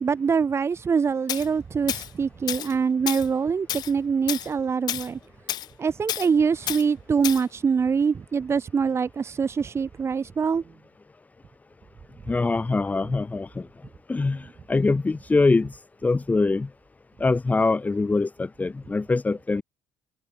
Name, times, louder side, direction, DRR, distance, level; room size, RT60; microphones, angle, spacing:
voice 1, 0.0-5.2 5.8-10.6, right 6 dB, 35° right, 3.9 m, -24 dB
Tools, 1.3-1.5 1.9-2.1 2.5-2.7 3.1-3.3 3.7-3.9 4.3-4.5 4.9-5.1 5.5-5.7 6.1-6.3 6.7-6.8 7.2-7.4, left 12 dB, 65° left, 4.3 m, -30 dB
voice 2, 12.3-13.7 14.1-15.7 16.0-16.7 17.2-19.6, left 3 dB, 20° left, 3.2 m, -23 dB
cardioid pair, 95°, 8 cm